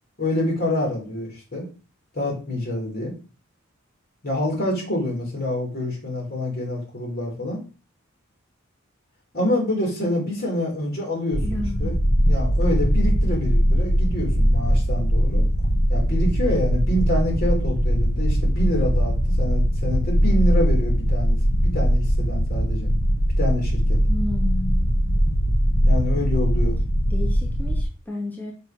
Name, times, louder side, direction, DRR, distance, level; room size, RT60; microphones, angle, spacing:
voice 1, 0.2-1.7 2.1-3.1 4.2-7.6 9.3-12.0 12.3-15.5 15.9-21.4 21.6-22.9 23.4-24.0 25.8-26.8, left 1 dB, 45° left, -1 dB, 3.7 m, -26 dB
sound 1, 11.3-27.8, equal, 75° left, 1.5 m, -20 dB
voice 2, 11.4-11.9 24.1-25.1 27.1-28.5, left 2 dB, 10° left, -2 dB, 2.0 m, -32 dB
6.7 x 5.0 x 5.9 m, 0.34 s
head